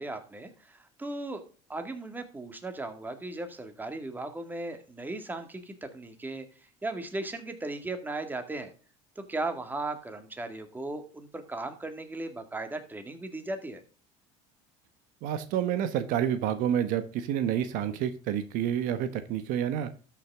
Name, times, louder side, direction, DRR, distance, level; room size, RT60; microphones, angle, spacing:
voice 1, 0.0-1.4 1.7-6.5 6.8-8.7 9.2-13.8, right 2 dB, 10° right, 7 dB, 2.0 m, -37 dB
voice 2, 15.2-20.0, right 10 dB, 70° right, 11 dB, 1.2 m, -29 dB
13.0 x 6.0 x 3.6 m, 0.37 s
supercardioid pair, 110°, 15 cm